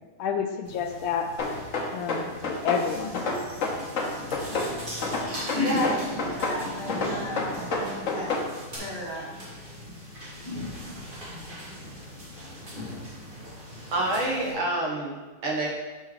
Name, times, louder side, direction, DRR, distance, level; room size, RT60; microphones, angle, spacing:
voice 1, 0.2-1.3 1.9-3.2, left 7 dB, 75° left, 5 dB, 1.3 m, -29 dB
sound 1, 0.6-14.5, left 1 dB, 30° right, 1.2 m, -37 dB
sound 2, 1.4-2.8 3.1-4.7 5.0-6.6 6.9-8.5, left 3 dB, 50° left, 1.1 m, -28 dB
voice 2, 5.6-8.3 8.7-9.3, equal, 50° right, -8 dB, 1.4 m, -34 dB
voice 3, 13.9-15.7, right 2 dB, 75° right, -2 dB, 2.0 m, -27 dB
6.7 x 5.5 x 3.1 m, 1.2 s
omnidirectional pair, 2.3 m